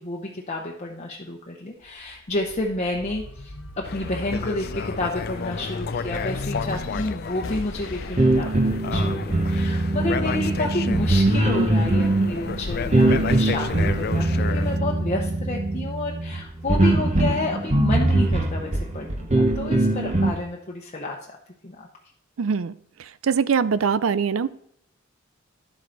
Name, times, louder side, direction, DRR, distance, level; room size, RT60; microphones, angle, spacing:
voice 1, 0.0-21.2 21.6-21.9, left 2 dB, 35° left, -1 dB, 0.9 m, -30 dB
sound 1, 1.8-12.6 13.1-14.3, left 2 dB, 85° left, 1.0 m, -38 dB
sound 2, 3.8-14.8, left 5 dB, 50° left, 0.5 m, -32 dB
sound 3, 8.2-20.3, right 2 dB, 35° right, 1.0 m, -22 dB
voice 2, 22.4-22.7 23.3-24.5, right 6 dB, 80° right, 16 dB, 0.5 m, -22 dB
11.0 x 7.6 x 4.0 m, 0.69 s
head